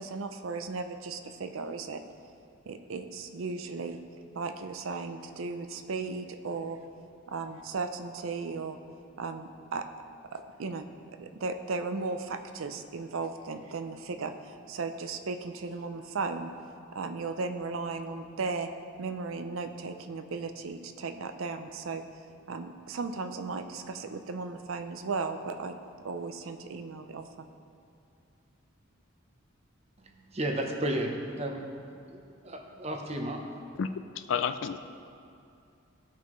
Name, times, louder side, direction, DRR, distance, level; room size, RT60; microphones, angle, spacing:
voice 1, 0.0-2.0 2.7-4.0 4.3-6.8 7.3-8.8 9.2-9.9 10.3-10.8 11.2-16.5 16.9-18.7 19.0-22.0 22.5-25.7 26.0-27.2, right 4 dB, 75° right, 8 dB, 0.5 m, -36 dB
voice 2, 30.0-31.6 32.1-33.4, right 1 dB, 30° right, 2 dB, 0.8 m, -33 dB
voice 3, 34.2-34.8, left 7 dB, 65° left, 10 dB, 0.4 m, -30 dB
15.5 x 5.6 x 3.1 m, 2.5 s
head